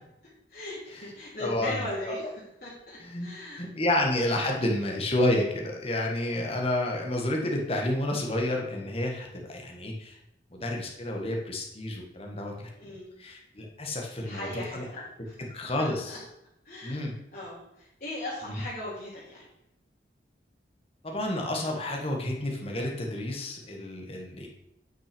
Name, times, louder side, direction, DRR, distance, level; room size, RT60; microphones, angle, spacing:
voice 1, 0.5-4.0 12.7-13.1 14.1-15.4 15.8-16.2 16.6-19.4, left 1 dB, 50° left, -8 dB, 3.2 m, -39 dB
voice 2, 1.4-2.3 3.0-3.3 3.6-10.2 10.5-12.7 13.2-14.8 15.4-16.1 16.8-17.1 21.0-24.5, left 1 dB, 35° left, 1 dB, 1.5 m, -30 dB
9.1 x 5.9 x 5.2 m, 0.84 s
head